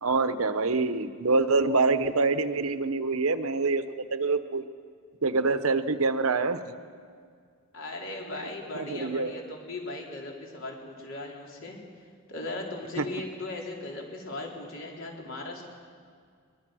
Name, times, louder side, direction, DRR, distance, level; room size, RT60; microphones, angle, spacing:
voice 1, 0.0-4.6 5.2-6.6 8.7-9.3 13.0-13.1, right 3 dB, 75° right, 11 dB, 1.0 m, -25 dB
voice 2, 7.7-11.8 12.3-15.6, left 2 dB, 60° left, 0 dB, 3.7 m, -38 dB
22.5 x 20.0 x 6.3 m, 2.1 s
head